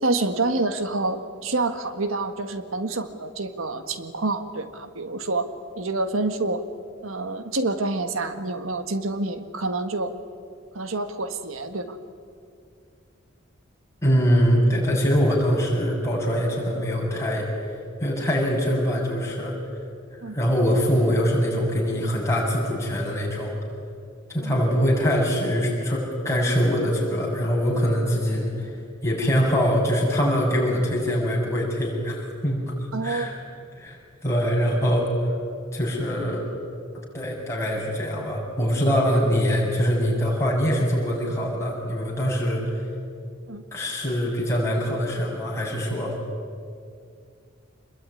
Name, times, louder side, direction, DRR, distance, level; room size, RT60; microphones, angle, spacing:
voice 1, 0.0-5.4 5.7-6.6 7.0-10.1 10.7-12.0 20.2-20.3 24.4-24.5 32.9-33.3 43.5-43.6, right 2 dB, 85° right, 9 dB, 1.7 m, -27 dB
voice 2, 14.0-17.5 18.0-19.6 20.3-23.5 24.3-28.7 29.0-32.7 33.0-33.3 33.8-34.0 34.2-35.3 35.7-36.4 37.1-42.8 43.7-46.2, equal, 15° left, -3 dB, 7.4 m, -23 dB
27.5 x 21.5 x 9.9 m, 2.3 s
head